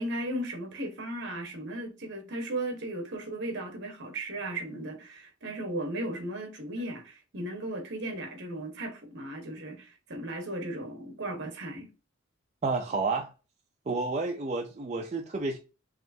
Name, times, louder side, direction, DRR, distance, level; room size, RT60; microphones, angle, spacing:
voice 1, 0.0-11.9, right 1 dB, 55° right, 1.2 m, -36 dB
voice 2, 12.6-13.3 13.9-15.6, right 3 dB, 35° right, 0.5 m, -30 dB
4.8 x 3.2 x 2.7 m
head